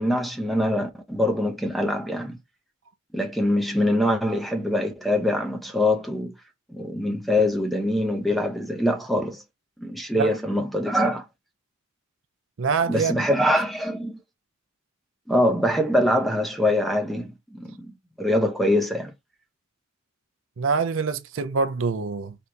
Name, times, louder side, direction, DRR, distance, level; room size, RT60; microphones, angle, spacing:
voice 1, 0.0-2.4 3.1-6.3 6.7-9.4 9.8-11.2 12.9-14.2 15.3-17.9 18.2-19.1, left 1 dB, ahead, 0.6 m, -24 dB
voice 2, 12.6-13.2 20.6-22.3, right 5 dB, 70° right, 0.5 m, -25 dB
3.4 x 2.9 x 3.8 m
head